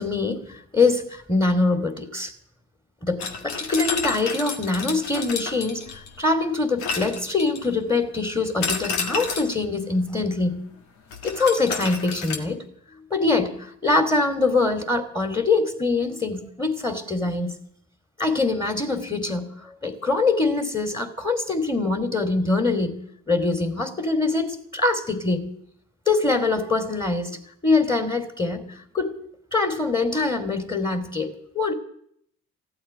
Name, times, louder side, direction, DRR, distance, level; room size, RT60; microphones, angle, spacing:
voice 1, 0.0-2.3 3.0-10.7 11.2-12.6 13.1-17.5 18.2-25.5 26.1-27.4 27.6-29.2 29.5-31.7, left 3 dB, 10° left, 8 dB, 2.8 m, -24 dB
sound 1, 3.2-6.2 6.8-7.8 8.6-9.6 11.1-12.4, left 5 dB, 80° left, 1.8 m, -30 dB
15.0 x 8.8 x 9.9 m, 0.69 s
hypercardioid pair, 45°, 42 cm